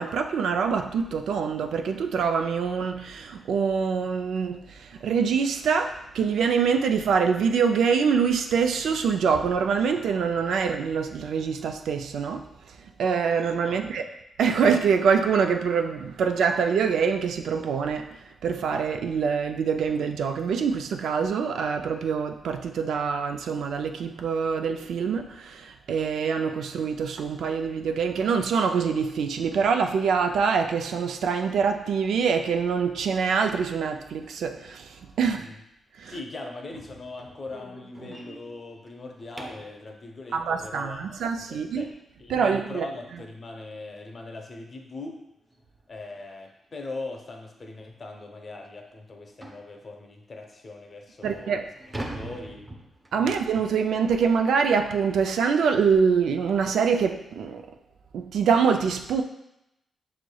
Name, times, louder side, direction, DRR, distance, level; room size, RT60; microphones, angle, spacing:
voice 1, 0.0-12.5 13.0-14.1 14.4-35.5 36.0-36.2 40.3-41.8 42.3-42.9 51.2-51.7 53.1-57.7 58.1-59.2, right 6 dB, 85° right, 5 dB, 0.3 m, -25 dB
voice 2, 35.2-35.6 36.1-41.2 41.5-41.9 42.2-45.2 45.9-51.6 52.1-52.7 53.2-53.4, left 2 dB, 40° left, 2 dB, 0.7 m, -40 dB
sound 1, 36.7-39.8 42.6-42.7 43.2-43.4 43.7-43.8 44.3-44.4 45.5-45.6 46.0-46.2 46.8-46.9 47.3-47.4 47.9-48.0 49.4-49.7 50.4-50.5 51.0-53.3, right 1 dB, 20° right, 0.6 m, -41 dB
6.0 x 3.2 x 2.3 m, 0.86 s
cardioid pair, 95°, 0 cm